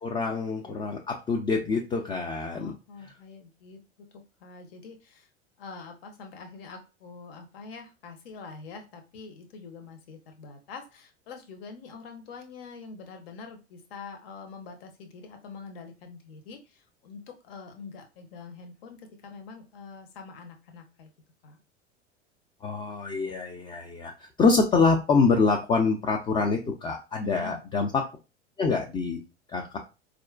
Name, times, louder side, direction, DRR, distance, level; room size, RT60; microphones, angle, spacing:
voice 1, 0.0-2.7 22.6-28.0 28.6-29.2 29.5-29.8, left 4 dB, 15° left, 1 dB, 0.4 m, -25 dB
voice 2, 2.5-5.3 5.6-21.1 21.4-21.6 27.2-27.6, left 4 dB, 55° left, 5 dB, 0.9 m, -45 dB
4.1 x 2.5 x 2.4 m, 0.29 s
figure-of-eight pair, 85°, 36 cm